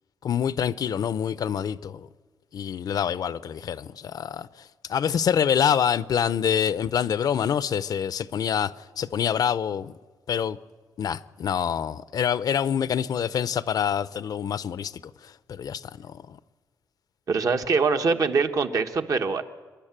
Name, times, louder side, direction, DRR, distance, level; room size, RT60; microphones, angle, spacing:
voice 1, 0.2-2.1 2.5-9.9 10.3-10.6 11.0-14.9 15.2-16.4, left 8 dB, 65° left, 0.6 m, -26 dB
voice 2, 17.3-19.4, right 4 dB, 55° right, 1.3 m, -23 dB
27.5 x 11.5 x 8.9 m
cardioid pair, 120°, 7 cm